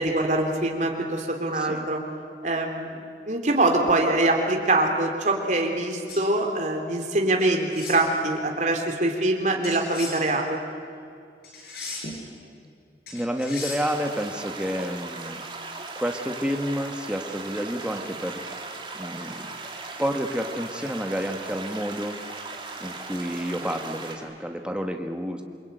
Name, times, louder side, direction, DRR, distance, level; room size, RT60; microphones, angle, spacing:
voice 1, 0.0-2.0 2.4-10.6, right 2 dB, 45° right, 2 dB, 3.2 m, -24 dB
voice 2, 1.5-1.9 13.1-15.4 15.9-18.4 18.9-19.4 20.0-22.2 22.8-25.4, equal, 5° right, 3 dB, 1.6 m, -29 dB
sound 1, 6.1-6.3 7.4-8.0 9.6-10.2 11.4-12.2 13.1-13.9, left 3 dB, 60° left, 5.9 m, -37 dB
sound 2, 13.8-24.2, right 3 dB, 25° right, 2.8 m, -38 dB
27.5 x 23.5 x 9.3 m, 2.3 s
head